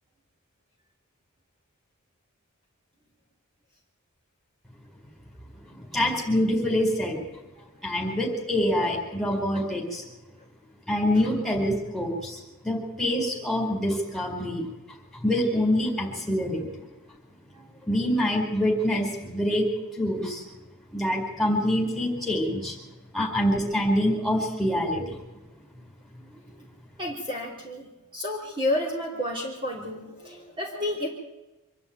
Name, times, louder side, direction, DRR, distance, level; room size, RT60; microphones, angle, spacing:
voice 1, 5.7-7.2 7.8-10.0 10.9-14.6 15.2-16.7 17.9-19.7 19.9-20.4 20.9-22.8 23.1-25.1, left 1 dB, ahead, 0 dB, 4.5 m, -25 dB
voice 2, 17.5-17.9 26.2-26.7 27.0-31.1, left 1 dB, 20° right, -1 dB, 3.1 m, -31 dB
25.5 x 11.5 x 9.2 m, 1.0 s
head